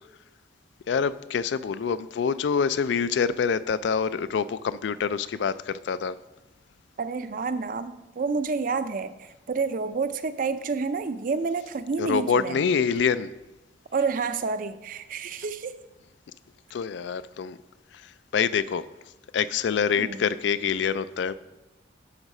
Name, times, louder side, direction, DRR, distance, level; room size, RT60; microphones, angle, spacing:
voice 1, 0.9-6.2 12.0-13.3 16.7-17.6 17.9-18.8 19.3-21.4, left 6 dB, 70° left, 15 dB, 0.3 m, -26 dB
voice 2, 7.0-12.6 13.9-15.8 19.9-20.2, right 4 dB, 50° right, 12 dB, 0.4 m, -29 dB
11.0 x 4.0 x 5.4 m, 1.0 s
head